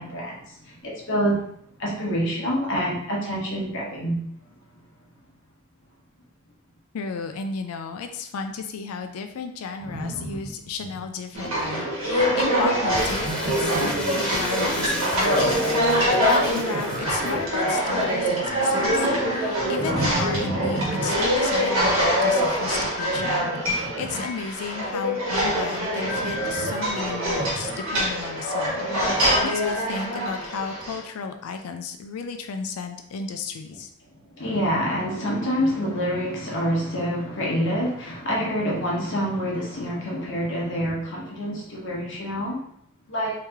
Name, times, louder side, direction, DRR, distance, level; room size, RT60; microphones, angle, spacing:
voice 1, 0.0-1.4 1.8-4.2 34.3-42.6 43.1-43.3, equal, 60° left, -4 dB, 1.1 m, -26 dB
voice 2, 6.9-33.9, left 5 dB, 85° left, 6 dB, 0.4 m, -33 dB
Livestock farm animals working animals, 9.8-11.1 11.3-11.9 13.2-14.1 15.7-17.5 19.8-21.2 23.1-24.3 26.0-27.8, right 1 dB, 55° right, 0.5 m, -33 dB
sound 1, 11.3-31.0, equal, 75° right, 1.3 m, -24 dB
Crumpling crinkling, 12.9-17.3, equal, 5° left, 0.4 m, -35 dB
3.1 x 2.8 x 3.5 m, 0.70 s
head